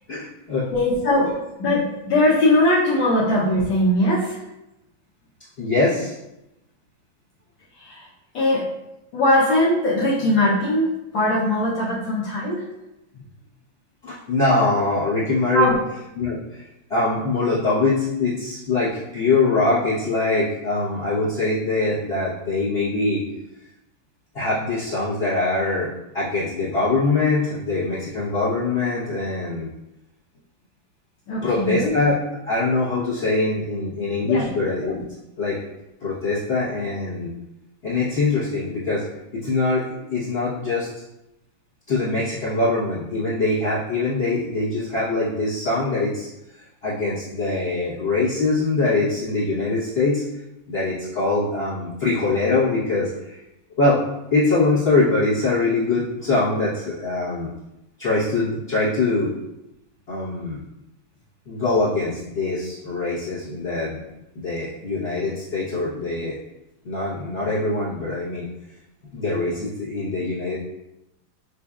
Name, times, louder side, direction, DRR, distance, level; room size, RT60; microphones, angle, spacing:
voice 1, 0.1-0.7 5.6-6.1 14.0-15.8 16.1-16.6 16.9-23.2 24.3-25.9 26.1-29.7 31.4-32.2 32.5-35.0 35.4-35.6 36.0-37.3 37.8-39.0 39.3-40.9 41.9-46.3 46.8-50.2 50.7-53.4 53.8-54.0 54.3-57.5 58.0-59.3 60.1-60.6 61.5-64.0 64.3-66.4 66.8-68.5 69.1-70.5, left 3 dB, 40° left, -11 dB, 1.0 m, -23 dB
voice 2, 0.7-4.4 7.8-8.1 8.3-8.7 9.1-12.7 15.5-15.7 31.3-31.9 34.3-34.5 34.9-35.0, left 1 dB, 70° left, -7 dB, 1.5 m, -20 dB
6.8 x 2.5 x 2.4 m, 0.91 s
omnidirectional pair, 2.2 m